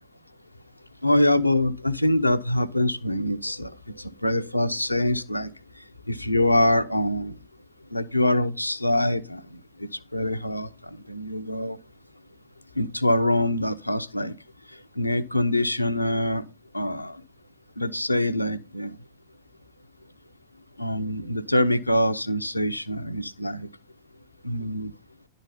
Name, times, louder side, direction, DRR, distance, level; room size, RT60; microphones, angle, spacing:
voice 1, 1.0-3.7 4.0-5.5 6.1-7.4 7.9-9.4 9.8-11.8 12.8-14.3 15.0-16.4 16.7-17.2 17.8-18.9 20.8-23.7 24.4-24.9, left 1 dB, 85° left, 0.6 m, -24 dB
11.0 x 4.0 x 5.6 m
figure-of-eight pair, 90°, 0 cm